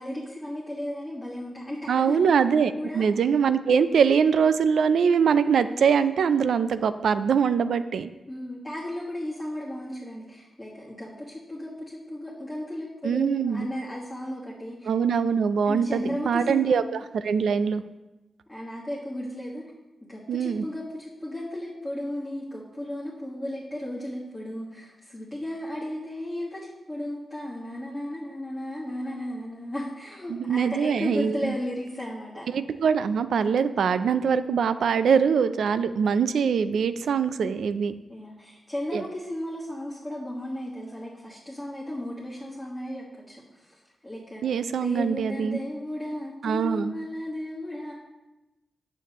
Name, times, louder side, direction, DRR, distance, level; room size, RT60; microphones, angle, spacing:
voice 1, 0.0-2.3 2.8-3.0 8.3-14.9 15.6-16.8 18.5-19.6 20.1-32.5 38.1-44.4 44.7-47.9, left 1 dB, 10° left, -8 dB, 1.6 m, -35 dB
voice 2, 1.9-8.1 13.0-13.7 14.9-17.8 20.3-20.7 30.3-31.5 32.5-37.9 38.9-39.0 44.4-45.6 46.4-46.9, right 6 dB, 85° right, 13 dB, 0.4 m, -23 dB
9.1 x 7.1 x 3.0 m, 1.0 s
wide cardioid pair, 130°, 0 cm